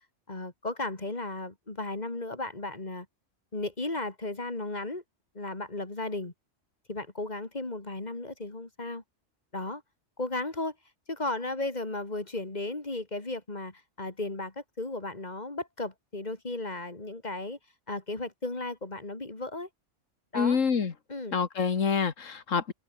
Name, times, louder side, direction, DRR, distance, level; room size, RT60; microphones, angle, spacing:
voice 1, 0.3-3.1 3.5-5.0 5.3-6.3 6.9-9.0 9.5-9.8 10.2-10.7 11.1-17.6 17.9-19.7 20.3-20.6 21.1-21.4, left 2 dB, 35° left, 2.7 m, -35 dB
voice 2, 20.3-20.9 21.3-22.7, left 6 dB, 85° left, 2.0 m, -26 dB
omnidirectional pair, 1.3 m